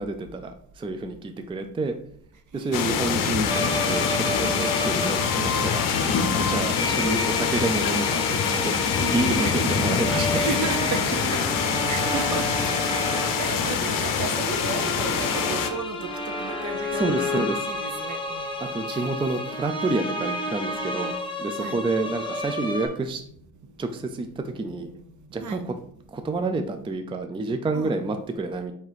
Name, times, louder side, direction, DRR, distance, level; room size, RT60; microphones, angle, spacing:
voice 1, 0.0-1.9 2.5-3.6 3.8-5.8 6.3-10.4 11.8-11.9 14.0-14.1 17.0-17.7 18.6-23.2 23.8-24.9 25.3-25.7 26.1-28.7, right 3 dB, 15° right, 0.4 m, -29 dB
voice 2, 2.5-3.1 9.3-9.6 10.3-11.4 11.9-12.8 13.4-17.3 17.6-18.5 18.9-19.1 21.6-21.8 23.6-23.7 24.3-24.9 25.4-25.7 27.7-27.9, right 5 dB, 55° right, 0.8 m, -34 dB
sound 1, 2.7-15.7, left 6 dB, 65° left, 0.6 m, -25 dB
sound 2, 3.4-22.9, left 2 dB, 15° left, 1.3 m, -30 dB
3.7 x 2.8 x 4.8 m
supercardioid pair, 65°, 36 cm